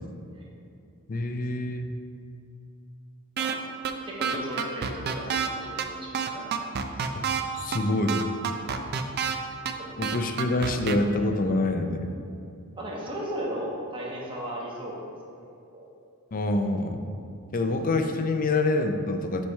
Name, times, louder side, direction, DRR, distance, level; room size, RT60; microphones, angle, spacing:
voice 1, 1.1-1.9 7.1-7.2 7.5-8.2 10.0-12.1 16.3-17.0 17.5-19.4, left 2 dB, 40° left, 6 dB, 0.5 m, -26 dB
sound 1, 3.4-3.6 3.8-3.9 4.2-5.5 5.8-5.9 6.1-7.4 7.7-7.8 8.1-9.4 9.7-9.8 10.0-11.0, right 7 dB, 45° right, 0.4 m, -28 dB
voice 2, 4.0-6.6 7.1-7.2 9.2-9.4 12.8-15.1 15.7-15.8, equal, 25° right, -4 dB, 1.2 m, -36 dB
7.3 x 3.3 x 5.4 m, 2.5 s
head